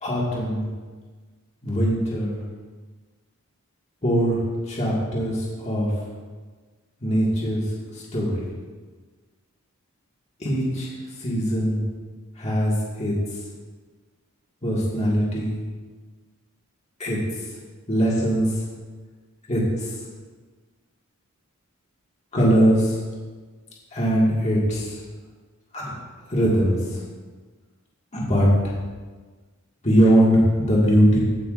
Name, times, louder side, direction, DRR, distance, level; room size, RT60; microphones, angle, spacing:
voice 1, 0.0-0.7 1.6-2.4 4.0-4.4 4.7-5.9 7.0-7.6 7.9-8.4 10.4-10.9 11.2-11.8 12.4-13.1 14.6-15.6 17.0-17.2 17.9-18.5 19.5-19.9 22.3-23.0 23.9-25.0 25.7-25.9 26.3-27.0 28.1-28.7 29.8-31.2, equal, 30° left, -5 dB, 1.8 m, -21 dB
16.0 x 5.9 x 2.5 m, 1.4 s
head